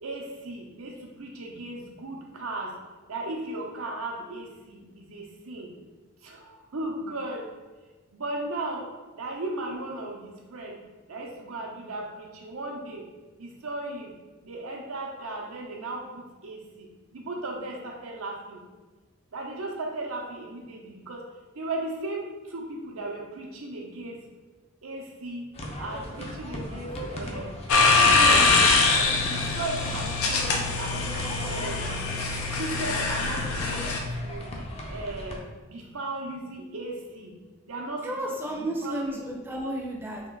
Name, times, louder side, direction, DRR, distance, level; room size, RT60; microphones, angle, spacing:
voice 1, 0.0-2.7 3.1-5.7 6.2-7.4 8.1-8.9 9.2-10.8 11.1-13.1 13.4-14.1 14.4-18.6 19.3-21.2 21.6-24.2 24.8-25.5 25.8-27.5 28.0-31.0 31.4-32.0 32.5-33.9 34.2-34.5 34.9-35.4 35.7-37.3 37.7-39.2, right 2 dB, 80° right, 0 dB, 0.8 m, -36 dB
sound 1, 25.5-35.4, left 1 dB, 30° left, 0.6 m, -37 dB
sound 2, 27.7-34.0, left 4 dB, 80° left, 0.6 m, -23 dB
voice 2, 38.0-40.2, right 1 dB, 10° right, -2 dB, 0.6 m, -32 dB
3.7 x 3.0 x 3.7 m, 1.3 s
head